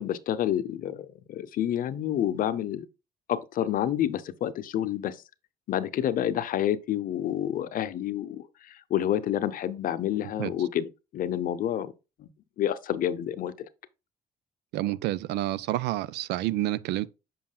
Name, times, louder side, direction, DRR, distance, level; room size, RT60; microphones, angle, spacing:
voice 1, 0.0-2.9 3.3-5.2 5.7-11.9 12.2-12.3 12.6-13.5, left 11 dB, 55° left, 0.6 m, -29 dB
voice 2, 14.7-17.1, right 14 dB, 80° right, 0.4 m, -29 dB
7.4 x 5.8 x 2.2 m
cardioid pair, 110°, 17 cm